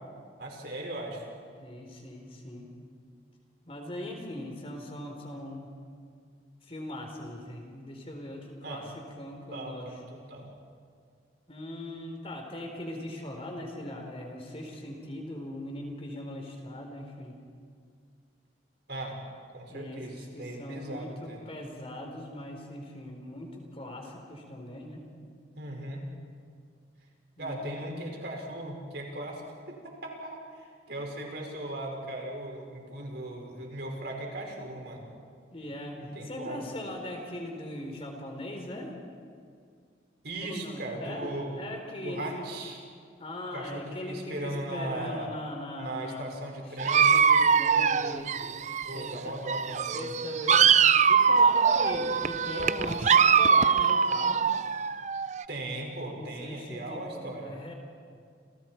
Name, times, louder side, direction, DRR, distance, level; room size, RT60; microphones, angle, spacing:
voice 1, 0.4-1.3 8.6-8.8 9.5-10.5 18.9-19.2 19.5-21.4 25.6-26.1 27.4-29.4 29.7-35.1 36.0-36.6 40.2-41.6 42.0-42.8 43.5-45.3 45.8-47.1 48.8-50.1 55.5-57.5, right 1 dB, 60° right, 0 dB, 5.6 m, -38 dB
voice 2, 1.6-2.7 3.7-5.7 6.6-10.0 11.5-17.3 19.7-20.0 20.3-25.0 27.4-27.9 35.5-39.0 40.5-42.6 43.2-46.3 46.8-48.3 48.9-49.4 49.9-50.8 51.1-54.5 56.2-57.7, left 1 dB, 30° left, 2 dB, 3.9 m, -40 dB
Dog, 46.8-49.2 49.5-55.4, right 6 dB, 40° right, 0.5 m, -23 dB
30.0 x 29.0 x 4.6 m, 2.2 s
head